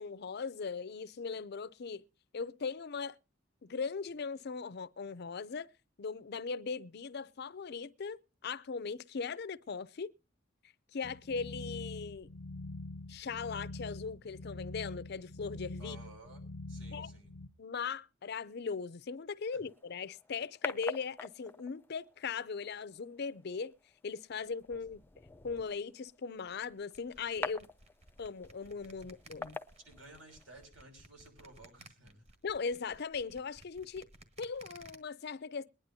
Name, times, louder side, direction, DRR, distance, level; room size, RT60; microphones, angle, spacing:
voice 1, 0.0-2.0 2.3-3.2 3.6-5.7 6.0-10.1 10.9-12.3 13.1-16.0 16.9-17.1 17.6-23.7 24.0-25.0 25.4-27.7 28.2-29.6 32.4-34.1 34.4-35.7, left 5 dB, 55° left, 0.5 m, -39 dB
sound 1, 11.0-17.5, left 2 dB, 90° left, 0.8 m, -45 dB
voice 2, 15.8-16.4 16.7-17.3 19.5-19.6 29.0-29.1 29.8-32.2, right 2 dB, 75° right, 6.1 m, -55 dB
sound 2, 19.7-30.7, left 3 dB, 10° left, 0.6 m, -47 dB
sound 3, 26.9-35.0, right 2 dB, 35° right, 1.7 m, -57 dB
22.0 x 10.5 x 2.7 m
head